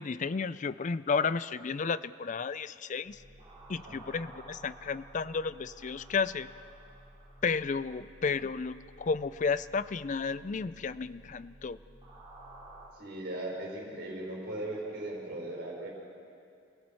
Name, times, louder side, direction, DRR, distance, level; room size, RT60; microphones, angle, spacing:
voice 1, 0.0-3.2 3.7-6.5 7.4-11.8, left 5 dB, 40° left, 15 dB, 0.4 m, -32 dB
sound 1, 3.1-12.9, right 1 dB, 30° right, 2.6 m, -53 dB
voice 2, 12.9-15.9, right 1 dB, 55° right, -3 dB, 5.9 m, -38 dB
28.0 x 18.0 x 5.7 m, 2.5 s
head